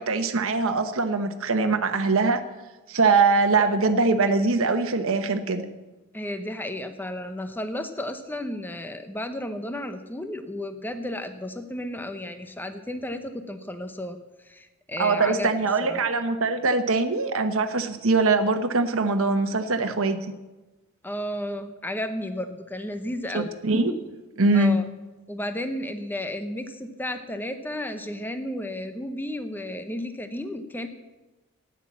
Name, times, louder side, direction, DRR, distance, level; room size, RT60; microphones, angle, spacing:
voice 1, 0.0-2.4 2.9-5.7 15.0-20.2 23.3-23.9 24.4-24.8, right 3 dB, 65° right, 7 dB, 1.1 m, -22 dB
voice 2, 6.1-14.2 14.4-15.5 15.8-16.0 21.0-23.5 24.5-24.8 25.3-30.9, left 1 dB, 10° left, 8 dB, 0.8 m, -33 dB
13.0 x 9.9 x 7.2 m, 1.1 s
head